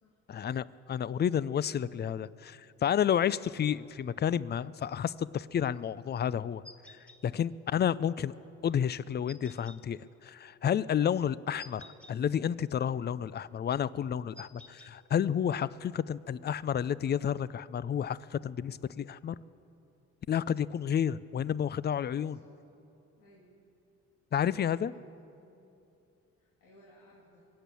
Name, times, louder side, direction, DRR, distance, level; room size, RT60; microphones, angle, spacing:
voice 1, 0.3-6.6 7.2-8.3 8.6-19.4 20.3-22.4 24.3-24.9, left 9 dB, 35° left, 19 dB, 0.4 m, -31 dB
sound 1, 6.6-7.2 9.3-9.8 11.6-12.1 14.3-14.9, left 1 dB, 5° left, 1.1 m, -51 dB
voice 2, 23.2-23.5 24.3-25.1 25.4-25.7 26.4-27.5, left 1 dB, 90° left, -5 dB, 3.0 m, -60 dB
22.5 x 8.5 x 6.9 m, 2.8 s
cardioid pair, 90°, 30 cm